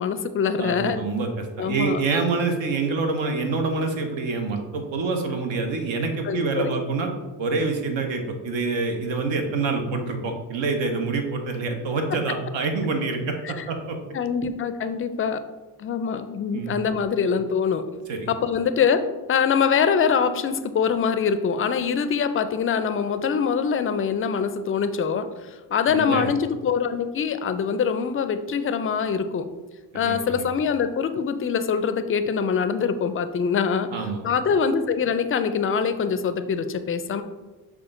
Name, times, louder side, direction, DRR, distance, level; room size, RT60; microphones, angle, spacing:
voice 1, 0.0-1.0 1.6-2.0 6.2-6.8 13.4-13.7 14.1-15.4 15.8-17.9 18.3-19.0 19.3-29.5 29.9-33.9 34.2-37.2, left 6 dB, 30° left, 11 dB, 0.4 m, -24 dB
voice 2, 0.6-7.1 7.4-14.0 16.5-16.7 18.1-18.3 25.9-26.3 30.0-30.5 33.9-34.2, right 4 dB, 70° right, 4 dB, 0.9 m, -26 dB
5.9 x 2.4 x 3.7 m, 1.2 s
supercardioid pair, 60°, 47 cm